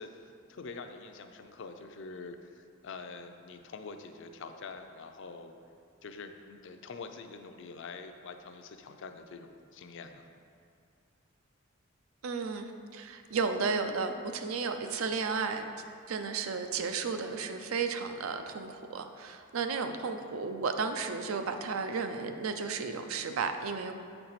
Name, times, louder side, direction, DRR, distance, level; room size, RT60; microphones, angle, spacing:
voice 1, 0.0-5.5 6.0-10.3, left 4 dB, 65° left, 7 dB, 0.5 m, -45 dB
voice 2, 12.2-15.7 16.1-23.9, right 5 dB, 90° right, 7 dB, 0.5 m, -33 dB
8.4 x 4.4 x 4.1 m, 2.4 s
head